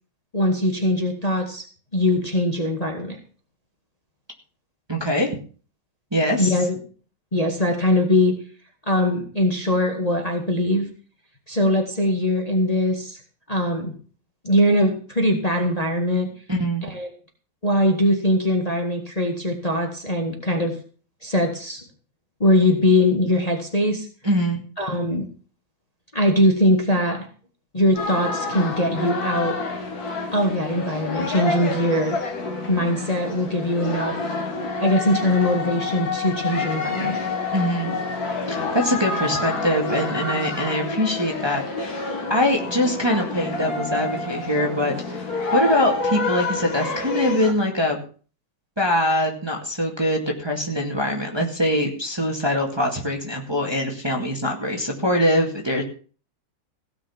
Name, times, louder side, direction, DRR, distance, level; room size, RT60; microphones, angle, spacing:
voice 1, 0.3-1.6 1.9-3.2 6.4-6.8 7.3-8.3 8.9-10.9 11.5-13.2 13.5-13.9 14.4-16.3 16.8-17.1 17.6-20.8 21.2-21.8 22.4-24.1 24.8-25.2 26.1-27.3 27.7-29.6 30.3-32.2 32.7-34.2 34.8-37.2, left 1 dB, 20° left, 2 dB, 1.9 m, -21 dB
voice 2, 4.9-5.3 6.1-6.6 16.5-16.9 24.2-24.6 37.5-37.9 38.5-48.0 48.8-55.8, equal, 15° right, 0 dB, 2.1 m, -23 dB
sound 1, 27.9-47.5, left 3 dB, 55° left, 2.5 m, -28 dB
17.0 x 6.1 x 7.2 m, 0.40 s
omnidirectional pair, 2.0 m